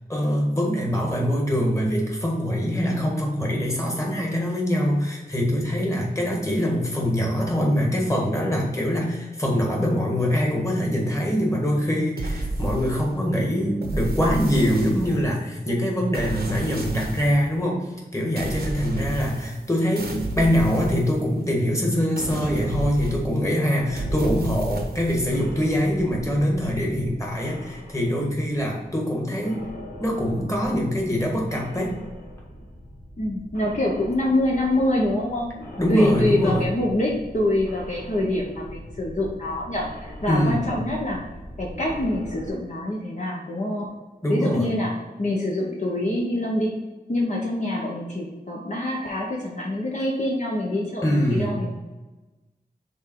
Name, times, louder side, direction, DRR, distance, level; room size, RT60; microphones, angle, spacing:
voice 1, 0.1-17.9 18.1-29.6 30.0-32.0 35.8-36.7 40.3-40.6 44.2-44.7 51.0-51.5, equal, 20° left, -1 dB, 1.8 m, -23 dB
Fire Magic Impact, 12.2-13.3 13.8-15.4 16.1-17.5 18.4-19.7 20.0-21.6 22.2-23.5 24.0-25.2, right 2 dB, 90° right, 1.0 m, -31 dB
sound 1, 23.7-29.1 29.4-42.5, equal, 65° left, 1.6 m, -40 dB
voice 2, 33.2-35.5 35.9-41.2 41.6-43.9 44.3-46.7 47.1-51.7, left 1 dB, 50° left, -3 dB, 1.0 m, -25 dB
5.4 x 3.8 x 4.7 m, 1.1 s
wide cardioid pair, 70°, 16 cm